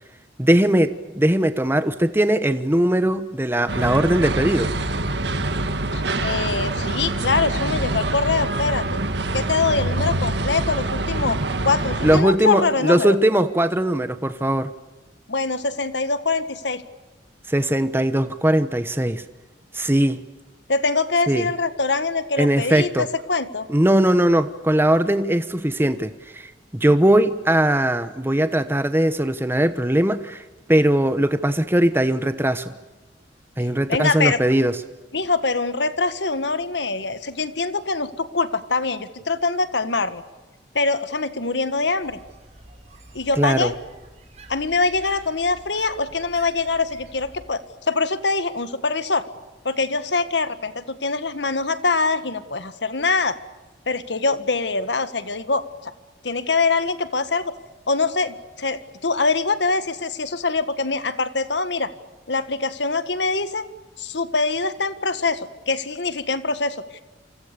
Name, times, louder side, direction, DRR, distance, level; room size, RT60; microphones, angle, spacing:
voice 1, 0.4-4.7 12.0-14.7 17.5-19.2 19.7-20.2 21.3-21.5 22.4-23.1 23.7-30.4 30.7-32.7 33.6-34.8 43.4-43.7, right 1 dB, 15° right, 11 dB, 1.0 m, -20 dB
sound 1, 3.7-12.2, right 2 dB, 70° right, 1.9 m, -25 dB
voice 2, 5.9-9.0 9.3-11.4 11.6-13.1 15.3-16.8 20.7-23.7 33.9-34.4 35.1-40.2 40.7-42.2 43.1-43.7 44.5-49.2 49.6-53.4 53.9-55.9 56.2-57.5 57.9-61.9 62.3-63.7 64.0-67.0, left 3 dB, 80° left, 12 dB, 1.7 m, -23 dB
sound 2, 42.0-47.5, right 2 dB, 40° right, 5.5 m, -47 dB
29.0 x 25.5 x 7.0 m, 1.1 s
head